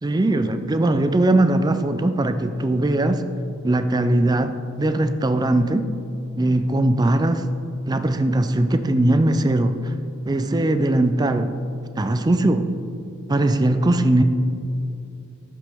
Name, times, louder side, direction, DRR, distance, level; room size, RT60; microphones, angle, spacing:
voice 1, 0.0-3.2 3.6-5.9 6.4-7.5 7.9-9.9 10.3-11.6 12.0-12.7 13.3-14.2, right 1 dB, 20° right, 10 dB, 0.4 m, -20 dB
12.5 x 9.0 x 3.5 m, 2.7 s
head